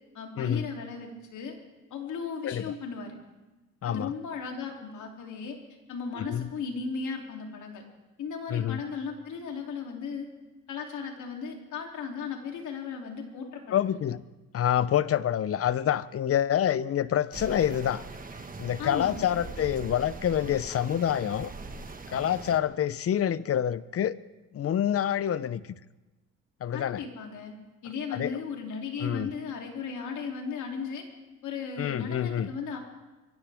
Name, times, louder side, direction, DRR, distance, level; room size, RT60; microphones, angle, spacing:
voice 1, 0.1-1.6 1.9-3.1 3.8-5.6 5.9-7.8 8.2-10.3 10.7-14.1 18.8-19.3 26.7-27.5 27.8-31.0 31.4-32.8, left 5 dB, 75° left, 1 dB, 3.1 m, -36 dB
voice 2, 3.8-4.1 6.2-6.5 8.5-8.8 13.7-14.2 14.5-18.0 18.6-21.5 22.1-24.1 24.5-25.6 26.6-27.0 28.1-28.4 29.0-29.3 31.8-32.5, left 10 dB, 50° left, 17 dB, 0.7 m, -27 dB
sound 1, 17.3-22.6, right 3 dB, 30° right, 1.4 m, -41 dB
23.0 x 16.5 x 3.5 m, 1.1 s
cardioid pair, 90°, 30 cm